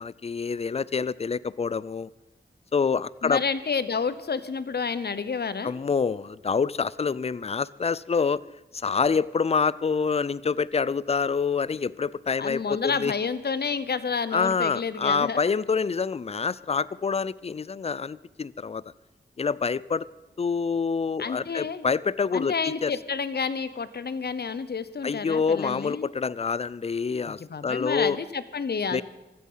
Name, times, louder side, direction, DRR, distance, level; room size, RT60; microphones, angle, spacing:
voice 1, 0.0-2.1 2.7-3.4 5.6-8.4 8.7-13.1 14.3-18.8 19.4-20.1 20.4-22.9 25.0-28.2 28.9-29.0, left 5 dB, 35° left, 21 dB, 0.4 m, -26 dB
voice 2, 3.2-5.7 12.4-15.4 21.2-21.9 22.3-26.1 27.2-29.0, left 5 dB, 65° left, 15 dB, 0.9 m, -30 dB
15.5 x 13.5 x 5.6 m, 1.0 s
wide cardioid pair, 80°, 19 cm